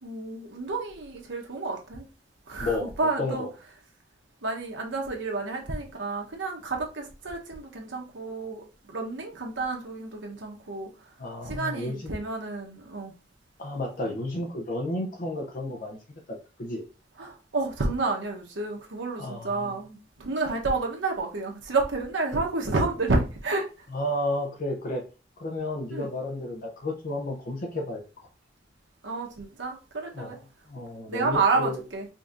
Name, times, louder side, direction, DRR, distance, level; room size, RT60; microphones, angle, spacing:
voice 1, 0.0-2.0 2.5-3.4 4.4-10.9 11.4-13.1 17.2-23.7 25.9-26.1 29.0-30.4 31.1-32.1, right 3 dB, 75° right, 0.9 m, -30 dB
voice 2, 2.6-2.9 3.2-3.5 11.2-12.1 13.6-16.0 16.6-16.8 19.2-19.8 23.9-25.0 25.4-28.3 30.1-30.4 30.7-31.8, left 1 dB, 50° left, 0.6 m, -32 dB
5.0 x 2.7 x 2.5 m
head